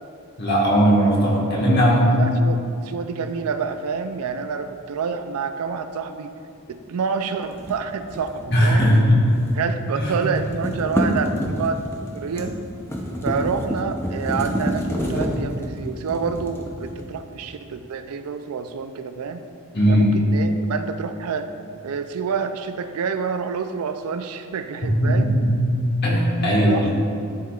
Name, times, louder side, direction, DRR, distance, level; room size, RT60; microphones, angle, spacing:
voice 1, 0.4-2.1 8.5-9.2 9.9-10.2 19.7-20.1 25.0-25.5 26.0-26.9, equal, 45° left, -4 dB, 1.5 m, -18 dB
voice 2, 2.1-6.3 6.7-8.9 9.5-12.6 13.2-19.4 19.9-21.5 21.8-25.4 26.3-26.9, right 5 dB, 80° right, 9 dB, 0.4 m, -28 dB
sound 1, 7.5-9.7 10.0-17.3, equal, 10° left, 0.5 m, -28 dB
11.0 x 4.8 x 2.4 m, 2.5 s
head